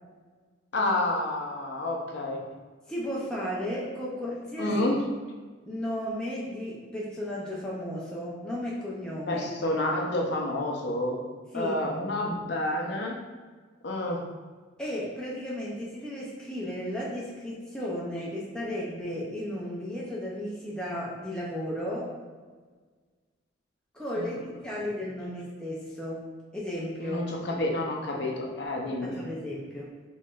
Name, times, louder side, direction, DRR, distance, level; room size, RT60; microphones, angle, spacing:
voice 1, 0.7-2.4 4.6-5.0 9.3-11.2 11.5-13.1 13.8-14.2 24.2-24.3 27.0-29.2, left 1 dB, 60° left, 0 dB, 0.6 m, -29 dB
voice 2, 2.9-4.7 5.6-9.5 11.5-11.8 14.8-22.1 23.9-26.3 26.5-27.2 29.0-29.9, left 1 dB, 5° left, -6 dB, 0.5 m, -34 dB
4.4 x 3.0 x 2.4 m, 1.5 s
head